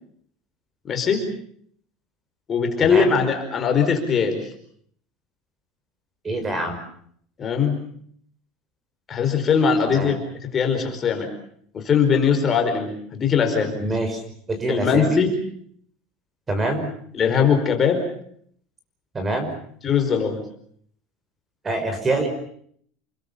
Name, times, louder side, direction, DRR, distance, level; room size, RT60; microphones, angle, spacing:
voice 1, 0.9-1.2 2.5-4.5 7.4-7.8 9.1-10.2 10.5-11.3 11.7-13.8 14.7-15.3 17.1-18.1 19.8-20.4, left 6 dB, 25° left, 5 dB, 4.7 m, -20 dB
voice 2, 2.8-3.2 6.2-6.8 9.9-10.1 13.8-14.2 14.5-15.2 16.5-16.9 19.1-19.5 21.6-22.3, right 2 dB, 20° right, 7 dB, 5.4 m, -25 dB
29.0 x 21.5 x 7.1 m, 0.65 s
supercardioid pair, 145°, 0 cm